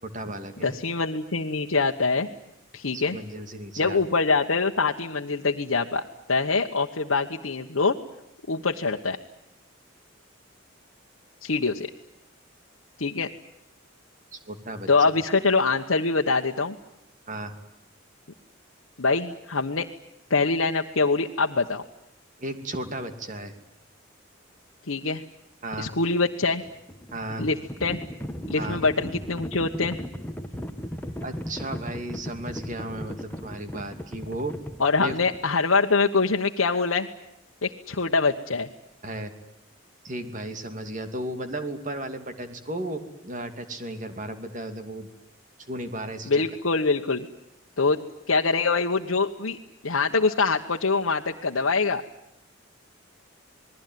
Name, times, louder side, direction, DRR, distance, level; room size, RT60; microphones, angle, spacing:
voice 1, 0.0-0.8 2.9-4.0 14.3-14.9 17.3-17.6 22.4-23.5 25.6-25.9 27.1-27.5 28.6-28.8 31.2-34.5 35.0-35.2 39.0-39.3 40.0-45.1 45.6-46.4, right 1 dB, 40° right, 8 dB, 2.6 m, -34 dB
voice 2, 0.6-2.3 2.7-3.2 3.8-8.0 8.5-9.2 11.4-11.9 13.0-13.3 14.9-16.7 19.0-19.9 20.3-21.8 24.9-25.2 25.8-26.6 27.4-28.0 28.5-30.0 34.8-37.1 37.6-38.7 46.3-47.3 47.8-48.0 48.3-49.6 49.8-52.0, left 4 dB, 85° left, 1 dB, 1.2 m, -24 dB
Livestock farm animals working animals, 26.6-35.6, equal, 10° left, 1.3 m, -36 dB
28.5 x 20.5 x 9.4 m, 0.82 s
head